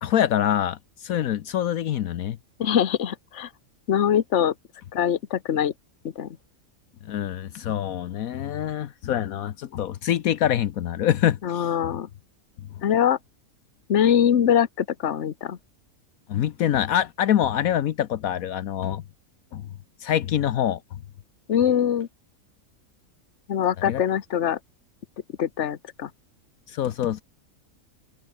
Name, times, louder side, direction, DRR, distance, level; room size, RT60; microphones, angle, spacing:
voice 1, 0.0-2.4 7.0-11.9 16.3-19.0 19.5-19.7 20.0-20.8 23.8-24.0 26.7-27.2, left 10 dB, 75° left, 1.2 m, -25 dB
voice 2, 2.6-3.5 3.9-4.5 4.9-5.7 6.2-6.3 11.4-12.1 12.8-13.2 13.9-15.6 21.5-22.1 23.5-24.6 25.4-26.1, left 9 dB, 55° left, 1.3 m, -23 dB
open air
omnidirectional pair, 1.5 m